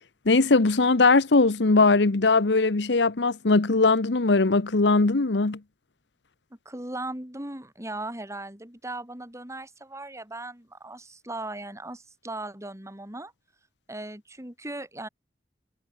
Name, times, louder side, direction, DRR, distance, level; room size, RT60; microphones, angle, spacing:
voice 1, 0.3-5.6, left 3 dB, 75° left, 1.0 m, -20 dB
voice 2, 6.6-13.3 13.9-15.1, right 2 dB, 15° right, 4.7 m, -38 dB
head